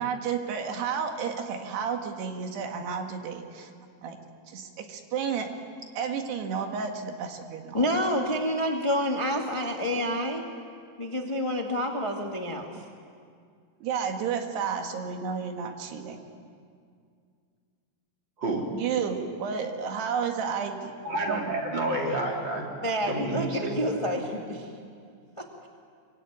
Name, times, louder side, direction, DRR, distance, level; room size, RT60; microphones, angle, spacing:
voice 1, 0.0-3.7 4.0-4.2 4.5-5.5 6.0-7.9 13.8-16.3 18.7-20.9 21.3-21.5, right 6 dB, 85° right, 4 dB, 3.9 m, -31 dB
voice 2, 7.7-10.4 11.0-12.7 22.8-24.7 25.4-25.5, equal, 25° left, 1 dB, 0.6 m, -28 dB
voice 3, 18.4-18.7 21.0-22.7 23.1-24.0, right 2 dB, 30° right, 0 dB, 4.0 m, -29 dB
25.0 x 24.5 x 9.4 m, 2.2 s
omnidirectional pair, 4.6 m